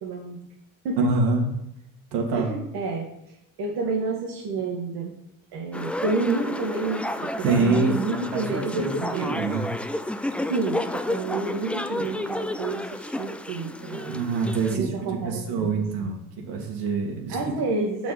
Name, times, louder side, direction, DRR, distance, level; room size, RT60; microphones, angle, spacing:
voice 1, 0.0-0.4 0.8-1.1 2.3-3.1 3.6-5.1 5.5-9.4 10.5-14.2 14.7-16.1 17.3-18.1, right 3 dB, 65° right, -1 dB, 1.5 m, -29 dB
voice 2, 1.0-1.5 2.1-2.5 7.4-9.7 14.1-16.2 16.5-17.5, right 3 dB, 80° right, 1 dB, 2.0 m, -25 dB
sound 1, 5.7-14.8, left 1 dB, 5° left, 0.3 m, -31 dB
6.0 x 4.6 x 5.7 m, 0.83 s
supercardioid pair, 75°, 42 cm